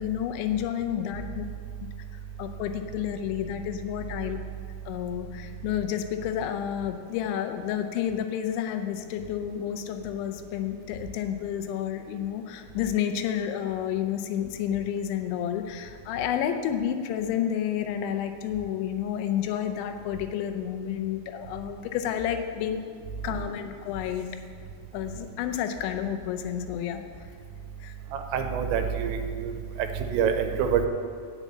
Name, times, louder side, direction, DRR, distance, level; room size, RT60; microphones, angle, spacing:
voice 1, 0.0-1.4 2.4-4.4 4.9-22.8 23.2-24.3 24.9-27.0 27.8-28.0, left 9 dB, 85° left, 7 dB, 3.1 m, -30 dB
voice 2, 28.1-29.5 29.8-30.9, right 7 dB, 90° right, 6 dB, 3.0 m, -26 dB
8.0 x 7.2 x 8.2 m, 2.1 s
omnidirectional pair, 5.2 m